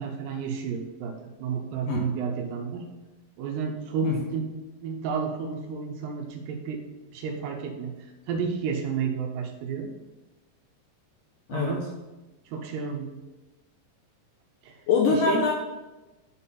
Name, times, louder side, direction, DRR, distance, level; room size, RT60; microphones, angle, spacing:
voice 1, 0.0-2.8 3.4-4.5 4.8-6.8 7.1-7.9 8.3-9.9 11.5-11.8 12.5-13.2 14.6-14.8 15.3-15.4, right 6 dB, 90° right, 3 dB, 3.2 m, -31 dB
voice 2, 14.9-15.5, left 5 dB, 80° left, 1 dB, 1.9 m, -23 dB
10.0 x 4.2 x 5.6 m, 1.1 s
omnidirectional pair, 4.7 m